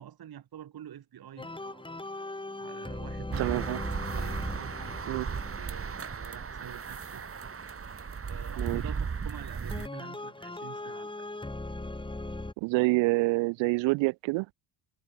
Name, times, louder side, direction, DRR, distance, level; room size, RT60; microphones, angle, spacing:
voice 1, 0.0-1.8 2.6-3.7 4.1-7.2 8.3-11.3, right 10 dB, 45° right, 2.2 m, -46 dB
sound 1, 1.4-7.1 9.7-12.5, left 2 dB, 10° left, 2.6 m, -39 dB
sound 2, 3.3-9.9, right 6 dB, 25° right, 2.0 m, -36 dB
voice 2, 3.4-3.8 5.1-5.3 8.6-8.8 12.6-14.5, right 25 dB, 65° right, 0.5 m, -27 dB
supercardioid pair, 80°, 49 cm